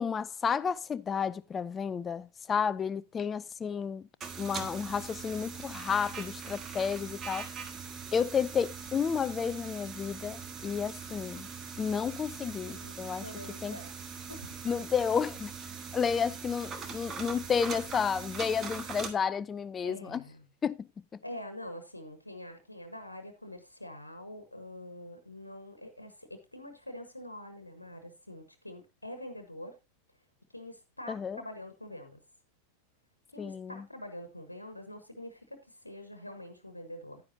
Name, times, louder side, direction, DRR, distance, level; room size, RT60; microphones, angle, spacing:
voice 1, 0.0-4.1 4.4-7.5 8.1-11.5 11.8-13.3 13.6-13.8 14.6-15.5 15.9-20.2 20.6-20.8 31.1-31.4 33.4-33.8, left 6 dB, 20° left, 0.5 m, -31 dB
sound 1, 4.2-19.1, right 5 dB, 25° right, 1.4 m, -42 dB
voice 2, 6.6-6.9 12.7-13.9 14.3-14.5 19.8-20.5 21.2-29.7 30.5-32.2 33.3-37.2, left 1 dB, 85° left, 1.3 m, -45 dB
9.9 x 9.9 x 2.7 m
figure-of-eight pair, 90°, 0 cm